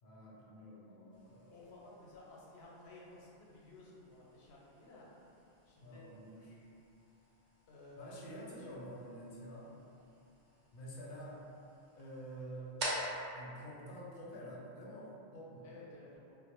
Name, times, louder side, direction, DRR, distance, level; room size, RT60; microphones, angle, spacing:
voice 1, 0.0-1.6 5.8-6.6 8.0-9.7 10.7-11.4 12.0-12.8 13.3-15.7, equal, 60° left, -5 dB, 0.7 m, -49 dB
sound 1, 1.1-14.7, right 1 dB, 55° right, 0.5 m, -49 dB
voice 2, 1.5-5.1 5.6-6.1 7.7-8.7 9.9-10.1 15.6-16.4, left 2 dB, 90° left, -4 dB, 0.9 m, -55 dB
2.1 x 2.0 x 2.9 m, 2.6 s
omnidirectional pair, 1.1 m